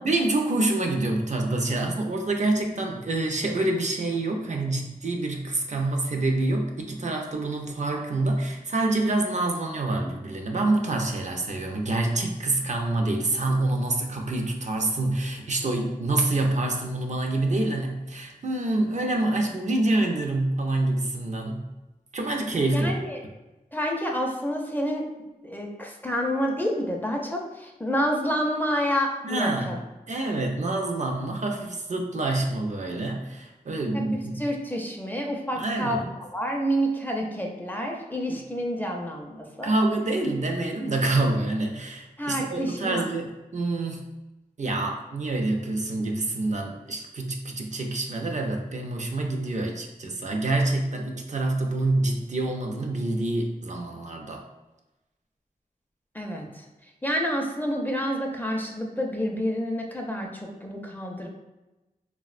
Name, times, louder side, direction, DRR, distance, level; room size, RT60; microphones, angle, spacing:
voice 1, 0.0-21.7 22.1-22.9 29.2-29.7 30.1-34.4 35.5-36.0 38.3-38.4 39.6-44.1 44.6-54.4, right 2 dB, 50° right, 2 dB, 0.4 m, -27 dB
voice 2, 22.7-23.2 23.7-25.1 25.4-29.8 33.9-34.0 34.4-39.7 42.2-43.1 56.1-56.6 57.0-61.3, equal, 10° left, 0 dB, 0.4 m, -28 dB
3.3 x 2.1 x 2.4 m, 1.0 s
wide cardioid pair, 75°, 15 cm